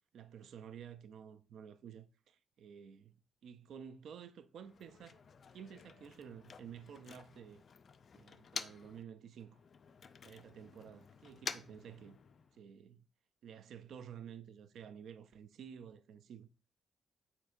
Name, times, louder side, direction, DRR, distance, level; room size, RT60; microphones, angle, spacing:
voice 1, 0.1-3.2 3.4-5.2 5.5-7.6 8.1-9.6 10.2-12.2 12.5-13.1 13.4-16.5, right 8 dB, 80° right, 0.3 m, -52 dB
Motor vehicle (road), 4.6-9.0 9.3-12.6, left 6 dB, 50° left, 0.3 m, -49 dB
7.7 x 2.8 x 2.4 m
cardioid pair, 100°, 0 cm